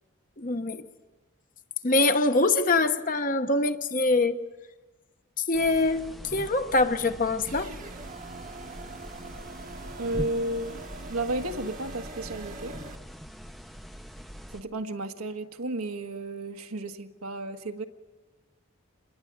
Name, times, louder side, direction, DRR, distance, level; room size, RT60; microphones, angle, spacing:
voice 1, 0.4-0.9 1.8-4.4 5.5-7.7, left 2 dB, 35° left, 8 dB, 1.1 m, -24 dB
sound 1, 5.5-14.6, equal, ahead, 0.8 m, -42 dB
sound 2, 7.5-13.0, right 2 dB, 35° right, 1.1 m, -43 dB
voice 2, 10.0-10.8 11.1-12.8 14.5-17.8, right 2 dB, 80° right, 5 dB, 1.6 m, -33 dB
27.0 x 21.0 x 9.6 m, 1.3 s
head